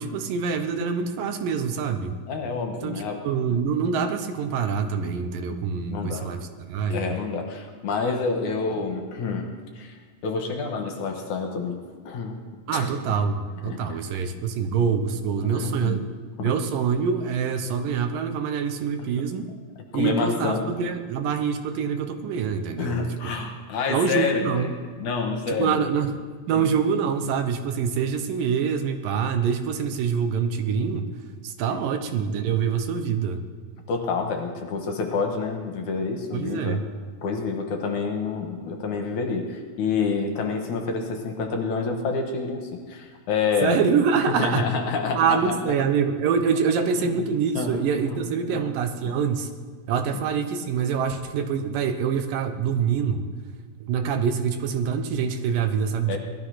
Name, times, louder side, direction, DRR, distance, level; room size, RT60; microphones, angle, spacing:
voice 1, 0.0-2.2 2.8-7.2 12.7-16.1 16.4-19.5 19.9-23.1 23.9-24.7 25.5-31.1 31.4-33.4 36.3-36.9 43.6-44.6 45.2-49.5 49.9-53.3 53.8-56.2, right 6 dB, 75° right, 7 dB, 2.6 m, -25 dB
voice 2, 2.3-3.2 5.9-6.3 6.9-9.5 9.8-9.9 10.2-11.8 12.1-12.4 12.7-12.9 13.7-13.8 15.4-16.0 16.4-16.5 19.0-19.1 20.0-20.7 22.8-25.8 26.5-26.6 31.7-31.8 33.9-36.8 37.2-43.8 44.3-45.5 47.0-47.2 47.6-47.8 48.1-48.2 48.5-48.6 56.1-56.2, left 4 dB, 65° left, 3 dB, 2.5 m, -28 dB
18.0 x 12.5 x 5.8 m, 1.6 s
omnidirectional pair, 4.2 m